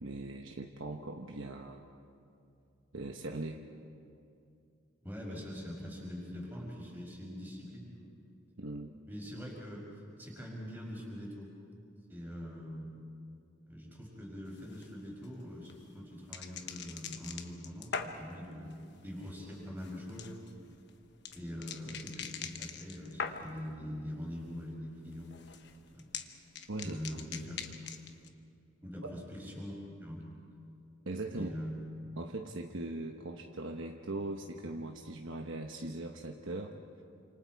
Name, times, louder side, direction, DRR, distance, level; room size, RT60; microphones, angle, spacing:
voice 1, 0.0-1.8 2.9-3.6 8.6-9.0 26.7-27.2 31.1-31.5 32.2-36.8, right 2 dB, 65° right, 2 dB, 1.1 m, -40 dB
voice 2, 5.0-8.1 9.1-9.9 10.2-11.5 12.1-12.9 13.7-20.3 21.3-25.5 25.9-26.1 26.8-28.0 28.8-29.7 30.0-30.2 31.3-31.7, equal, 10° right, -3 dB, 5.6 m, -43 dB
sound 1, 14.5-23.7 24.1-24.6 24.9-28.3, left 6 dB, 50° left, 1.2 m, -44 dB
29.5 x 27.0 x 4.7 m, 2.6 s
head